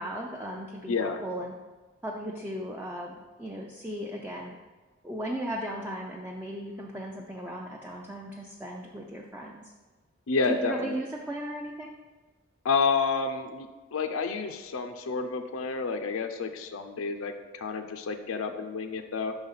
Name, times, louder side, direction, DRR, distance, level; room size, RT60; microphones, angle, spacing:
voice 1, 0.0-1.5 2.0-4.6 5.0-9.7 10.5-11.9, right 1 dB, 10° right, -2 dB, 0.4 m, -36 dB
voice 2, 0.9-1.2 10.3-11.0 12.6-19.3, left 4 dB, 85° left, 6 dB, 0.5 m, -30 dB
5.7 x 4.0 x 5.5 m, 1.3 s
head